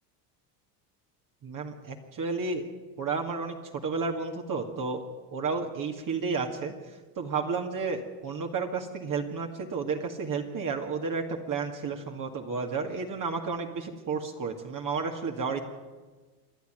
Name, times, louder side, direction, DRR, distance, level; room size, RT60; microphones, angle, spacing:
voice 1, 1.4-2.7 3.0-5.0 5.3-15.7, right 4 dB, 40° right, 2 dB, 2.2 m, -32 dB
27.0 x 10.5 x 9.2 m, 1.3 s
supercardioid pair, 90°, 47 cm